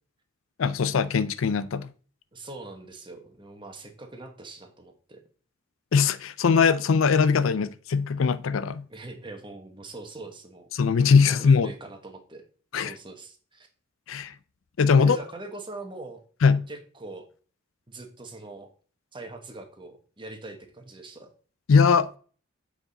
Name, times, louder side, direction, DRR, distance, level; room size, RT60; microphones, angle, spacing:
voice 1, 0.6-1.9 5.9-8.8 10.7-11.7 12.7-12.9 14.1-14.3 14.8-15.2 16.4-16.7 21.7-22.1, left 5 dB, 75° left, 0.5 m, -21 dB
voice 2, 2.3-5.2 8.9-10.7 11.3-12.4 12.7-13.7 15.0-16.2 16.7-17.3 17.9-18.7 19.1-21.3, right 2 dB, 25° right, 1.3 m, -42 dB
8.0 x 5.0 x 4.1 m
head